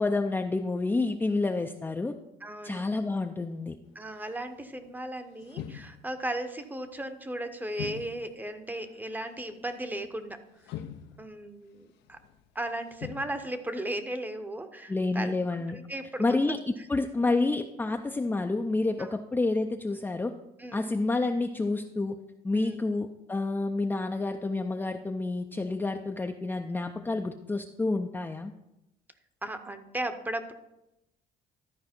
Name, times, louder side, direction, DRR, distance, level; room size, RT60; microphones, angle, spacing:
voice 1, 0.0-2.1 2.6-3.8 14.9-15.8 16.2-20.3 20.7-22.2 22.4-28.5, left 3 dB, 10° left, 4 dB, 0.4 m, -29 dB
voice 2, 2.4-2.8 3.9-10.8 11.2-12.2 12.5-15.3 15.7-16.6 19.0-19.1 20.6-20.9 22.5-22.8 29.4-30.5, right 1 dB, 10° right, 9 dB, 0.8 m, -36 dB
sound 1, 3.8-5.0 5.4-6.5 6.9-7.1 7.7-8.5 8.8-9.3 10.0-10.2 10.6-11.5 12.0-12.5 12.9-13.6, left 11 dB, 85° left, 0.6 m, -43 dB
13.0 x 4.7 x 4.3 m, 0.91 s
cardioid pair, 110°, 17 cm